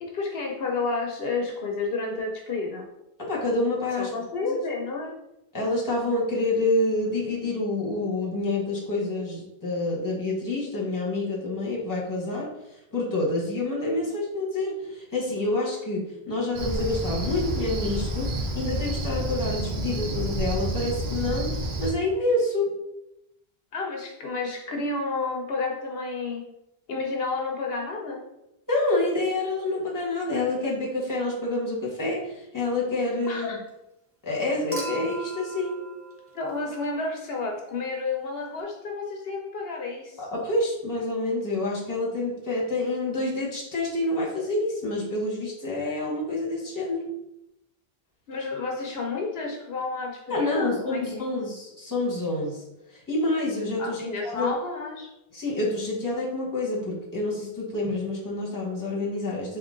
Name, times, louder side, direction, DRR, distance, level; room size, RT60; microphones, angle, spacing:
voice 1, 0.0-2.9 3.9-5.2 23.7-26.5 26.9-28.2 33.3-33.6 36.3-40.3 48.3-51.3 53.8-55.1, left 3 dB, 70° left, 1 dB, 0.8 m, -31 dB
voice 2, 3.2-4.1 4.5-4.6 5.5-12.5 12.9-21.5 21.8-22.7 28.7-33.5 34.2-35.8 40.2-47.1 50.3-52.6 53.1-54.0 54.2-54.5 55.3-59.6, left 2 dB, 20° left, -4 dB, 1.0 m, -27 dB
Cricket, 16.5-21.9, right 1 dB, 80° right, 1.0 m, -29 dB
Human group actions / Chink clink / Liquid, 34.7-37.1 38.6-38.7, right 2 dB, 20° right, 0.5 m, -39 dB
3.7 x 3.0 x 3.7 m, 0.87 s
omnidirectional pair, 1.1 m